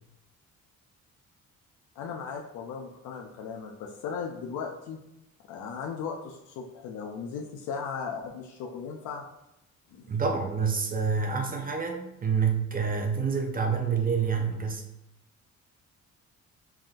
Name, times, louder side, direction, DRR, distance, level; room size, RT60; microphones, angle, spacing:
voice 1, 2.0-5.0 5.5-9.3 9.9-10.1, left 6 dB, 80° left, 0 dB, 0.5 m, -37 dB
voice 2, 10.1-14.8, right 6 dB, 30° right, 2 dB, 0.5 m, -27 dB
3.5 x 2.5 x 2.3 m, 0.90 s
cardioid pair, 90°, 30 cm